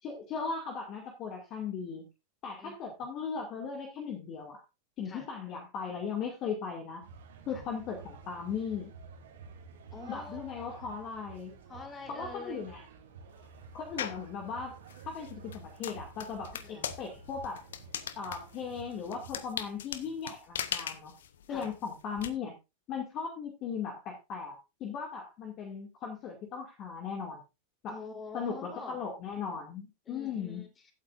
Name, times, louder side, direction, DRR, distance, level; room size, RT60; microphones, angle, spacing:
voice 1, 0.0-2.0 2.4-4.6 5.0-7.0 7.5-8.9 10.1-11.5 12.1-12.8 13.7-14.8 15.1-17.6 18.2-21.1 21.5-22.5 22.9-27.4 27.8-28.0 28.3-30.6, left 6 dB, 35° left, 1 dB, 2.5 m, -38 dB
sound 1, 7.0-19.3, right 4 dB, 60° right, 2.8 m, -51 dB
voice 2, 9.9-10.9 11.7-12.7 16.5-16.9 21.5-21.7 27.9-29.0 30.1-30.9, left 3 dB, 20° left, 4 dB, 3.7 m, -46 dB
sound 2, 14.0-14.3 14.9-22.3, left 9 dB, 60° left, 1.0 m, -39 dB
15.5 x 8.9 x 2.6 m, 0.26 s
figure-of-eight pair, 90°, 0 cm